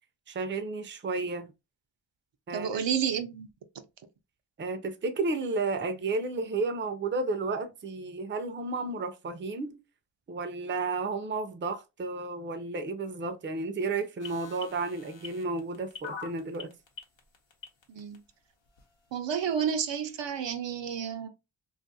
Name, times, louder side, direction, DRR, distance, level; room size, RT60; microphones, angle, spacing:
voice 1, 0.3-1.5 2.5-2.8 4.6-9.8 10.3-16.7, right 3 dB, 25° right, 0.4 m, -32 dB
voice 2, 2.5-3.5 17.9-18.2 19.1-21.3, right 8 dB, 70° right, 0.6 m, -30 dB
sound 1, 14.2-18.2 18.8-18.9, left 5 dB, 90° left, 0.8 m, -43 dB
2.5 x 2.4 x 2.6 m
wide cardioid pair, 65°, 45 cm